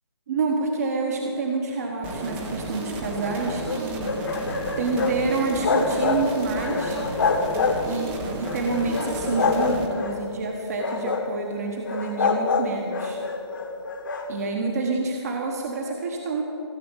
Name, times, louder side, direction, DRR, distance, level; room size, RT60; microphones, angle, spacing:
voice 1, 0.3-4.3 4.8-7.0 7.8-13.2 14.3-16.4, right 3 dB, 35° right, 2 dB, 1.2 m, -28 dB
sound 1, 2.0-9.9, right 2 dB, 10° right, 0.7 m, -33 dB
sound 2, 3.2-5.2 5.5-6.2 6.5-8.0 8.5-10.2 10.7-11.3 11.9-14.3, left 4 dB, 50° left, 1.4 m, -26 dB
15.5 x 6.9 x 9.0 m, 2.6 s
hypercardioid pair, 160°, 15 cm